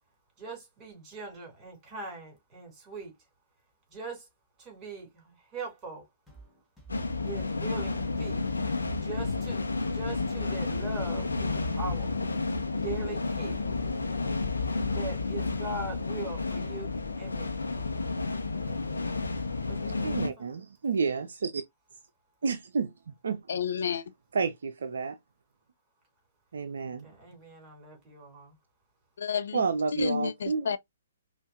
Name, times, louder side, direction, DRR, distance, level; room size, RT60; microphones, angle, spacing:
voice 1, 0.4-3.1 3.9-4.3 4.6-6.1 7.2-8.4 9.0-12.1 12.7-13.7 14.9-17.6 18.7-19.1 19.7-20.5 26.8-28.6, right 3 dB, 20° right, 3.3 m, -41 dB
sound 1, 6.3-14.2, right 3 dB, ahead, 1.4 m, -52 dB
sound 2, 6.9-20.3, left 3 dB, 75° left, 0.9 m, -31 dB
voice 2, 20.0-21.6 22.4-22.9 23.2-23.4 24.3-25.1 26.5-27.1 29.5-30.7, right 5 dB, 60° right, 0.6 m, -30 dB
voice 3, 23.5-24.0 29.2-29.6 30.0-30.8, left 7 dB, 60° left, 0.4 m, -30 dB
5.5 x 2.6 x 2.6 m
figure-of-eight pair, 120°, 0 cm